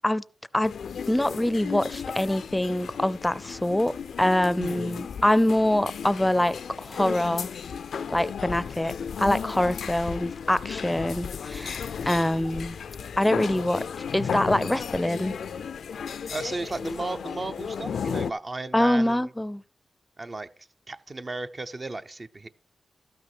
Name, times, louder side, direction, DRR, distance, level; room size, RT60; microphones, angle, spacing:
sound 1, 0.6-18.3, left 7 dB, 85° left, 0.3 m, -34 dB
voice 1, 1.1-7.5 8.1-8.9 9.2-12.8 13.2-13.8 14.1-15.4 18.7-19.6, left 1 dB, 10° left, 0.5 m, -24 dB
voice 2, 16.3-19.3 20.2-22.5, right 2 dB, 40° right, 0.6 m, -35 dB
13.0 x 5.9 x 4.5 m
cardioid pair, 55°, 0 cm